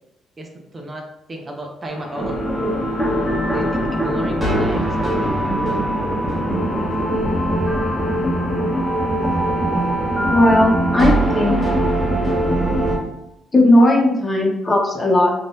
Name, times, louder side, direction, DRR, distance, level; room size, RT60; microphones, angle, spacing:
voice 1, 0.4-2.5 3.4-5.4, right 1 dB, 30° right, 1 dB, 0.6 m, -33 dB
sound 1, 1.9-11.9, left 2 dB, 55° left, 0.7 m, -38 dB
sound 2, 2.2-13.0, right 1 dB, 5° right, 1.1 m, -21 dB
voice 2, 10.3-11.6 12.4-12.5 13.5-15.3, left 1 dB, 30° left, -1 dB, 1.0 m, -16 dB
3.7 x 2.6 x 2.5 m, 0.89 s
cardioid pair, 75°, 0 cm